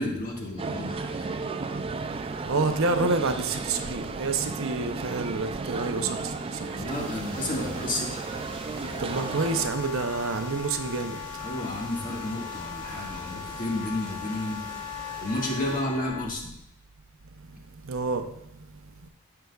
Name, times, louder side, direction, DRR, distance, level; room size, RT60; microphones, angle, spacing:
voice 1, 0.0-1.3 6.7-8.2 11.4-14.6 15.2-16.5, left 1 dB, 35° left, 1.7 m, -31 dB
sound 1, 0.6-9.7, right 3 dB, 25° right, 0.3 m, -34 dB
voice 2, 2.5-6.3 6.6-7.1 9.0-11.2 17.8-18.3, right 3 dB, 65° right, 0.7 m, -28 dB
sound 2, 6.9-15.8, equal, 5° left, 3.6 m, -44 dB
Wind instrument woodwind instrument, 8.8-16.3, left 8 dB, 80° left, 0.8 m, -39 dB
15.5 x 5.8 x 2.4 m
head